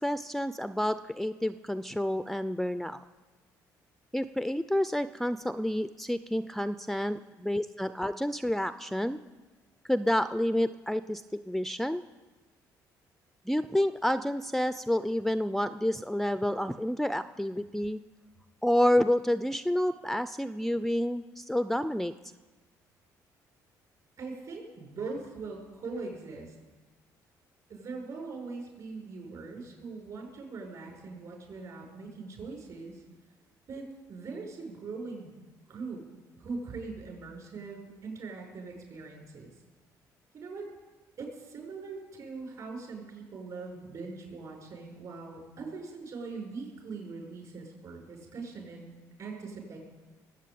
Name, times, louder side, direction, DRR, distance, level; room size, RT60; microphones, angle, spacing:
voice 1, 0.0-3.0 4.1-9.2 9.9-12.0 13.5-18.0 18.6-22.1, left 1 dB, ahead, 12 dB, 0.4 m, -29 dB
voice 2, 24.2-26.5 27.7-33.0 33.7-35.3 35.7-36.0 36.4-39.5 40.3-40.7 41.2-48.9 49.2-49.8, right 4 dB, 55° right, 1 dB, 6.1 m, -41 dB
20.5 x 8.3 x 8.5 m, 1.2 s
cardioid pair, 115°, 7 cm